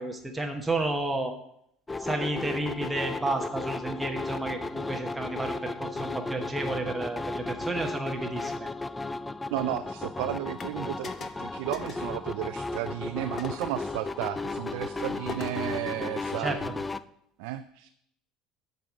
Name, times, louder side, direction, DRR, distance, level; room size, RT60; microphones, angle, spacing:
voice 1, 0.0-1.3 2.0-8.7 16.4-16.6, right 2 dB, 5° right, 1 dB, 0.9 m, -31 dB
history of old times in past final done on keyboard, 1.9-17.0, left 3 dB, 15° left, 0.3 m, -35 dB
voice 2, 9.5-11.1 11.4-16.8 17.4-17.9, right 14 dB, 80° right, 9 dB, 0.4 m, -33 dB
sound 1, 10.6-10.7 11.0-11.4 11.7-12.1 13.4-13.8 15.3-15.7, left 5 dB, 35° left, 0.7 m, -40 dB
7.5 x 5.5 x 6.1 m, 0.73 s
cardioid pair, 125°, 0 cm